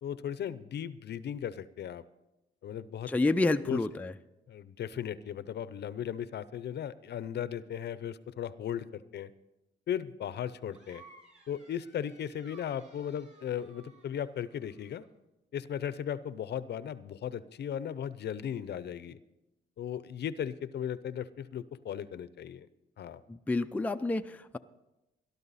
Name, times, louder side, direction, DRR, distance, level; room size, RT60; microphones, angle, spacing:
voice 1, 0.0-2.0 2.6-3.1 3.7-3.8 4.5-9.3 9.9-11.0 11.5-15.0 15.5-19.2 19.8-22.7 23.0-23.2, left 9 dB, 55° left, 16 dB, 0.6 m, -37 dB
voice 2, 3.1-4.1 23.3-24.6, left 2 dB, 5° left, 7 dB, 0.5 m, -29 dB
sound 1, 10.7-15.1, right 3 dB, 35° right, 6.5 m, -58 dB
18.5 x 12.0 x 4.1 m, 0.94 s
cardioid pair, 90°, 20 cm